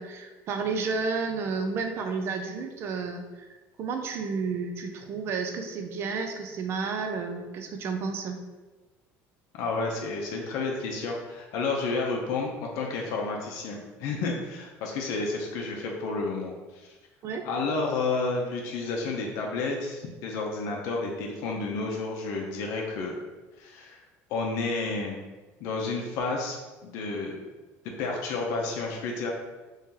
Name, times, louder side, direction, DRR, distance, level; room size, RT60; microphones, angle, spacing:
voice 1, 0.0-8.4 17.2-17.5, right 4 dB, 45° right, 6 dB, 0.5 m, -31 dB
voice 2, 9.5-16.9 17.4-23.1 23.6-24.0 24.3-25.2 25.6-27.4 28.0-29.3, left 3 dB, 70° left, 0 dB, 0.6 m, -31 dB
3.1 x 2.8 x 3.7 m, 1.2 s
cardioid pair, 140°, 6 cm